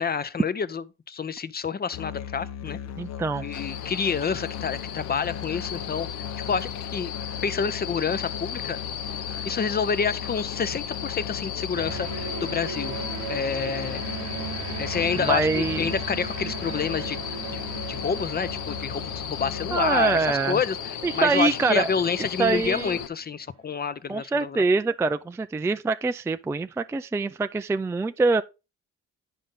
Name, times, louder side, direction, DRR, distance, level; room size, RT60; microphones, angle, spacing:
voice 1, 0.0-2.8 3.4-6.1 6.5-7.1 7.4-8.8 9.4-12.9 13.3-14.0 14.8-17.2 17.9-24.6, left 6 dB, 30° left, 0.7 m, -28 dB
Musical instrument, 1.9-20.3, left 9 dB, 60° left, 0.9 m, -38 dB
voice 2, 3.0-3.5 15.2-15.9 19.7-20.6 21.0-21.9 22.4-22.9 24.1-28.4, right 4 dB, 10° right, 0.3 m, -24 dB
sound 1, 3.5-23.1, left 9 dB, 85° left, 0.9 m, -35 dB
sound 2, 11.7-23.1, right 9 dB, 75° right, 1.0 m, -38 dB
10.0 x 5.4 x 3.8 m
cardioid pair, 90°, 30 cm